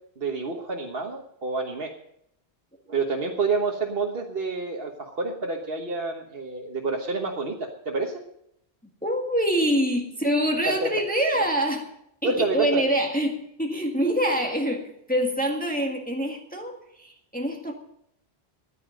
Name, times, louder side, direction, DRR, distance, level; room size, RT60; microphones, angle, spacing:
voice 1, 0.2-1.9 2.9-8.2 10.6-10.9 12.2-12.9, right 3 dB, 65° right, 0 dB, 1.5 m, -28 dB
voice 2, 9.0-11.8 12.2-17.7, equal, 10° left, 1 dB, 1.7 m, -25 dB
15.0 x 10.0 x 6.4 m, 0.74 s
omnidirectional pair, 1.1 m